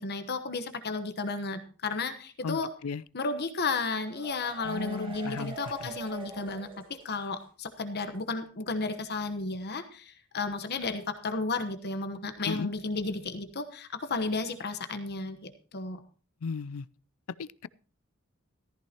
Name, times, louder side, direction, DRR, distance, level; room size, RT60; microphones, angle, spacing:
voice 1, 0.0-2.7 3.1-16.0, left 3 dB, 50° left, 9 dB, 1.1 m, -33 dB
voice 2, 2.4-3.0 4.6-5.9 12.5-12.7 16.4-16.9 17.4-17.7, left 5 dB, 75° left, 20 dB, 0.4 m, -36 dB
sound 1, 3.8-7.4 7.7-7.8 8.1-8.2, right 3 dB, 25° right, 1.8 m, -44 dB
14.5 x 14.0 x 2.9 m, 0.39 s
head